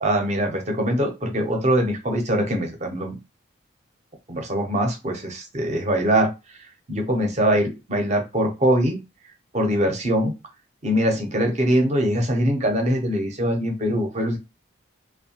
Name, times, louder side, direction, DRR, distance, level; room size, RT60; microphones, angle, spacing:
voice 1, 0.0-3.2 4.3-6.3 6.9-9.0 9.5-10.3 10.8-14.4, equal, 35° right, 3 dB, 0.6 m, -22 dB
2.6 x 2.1 x 2.8 m, 0.25 s
head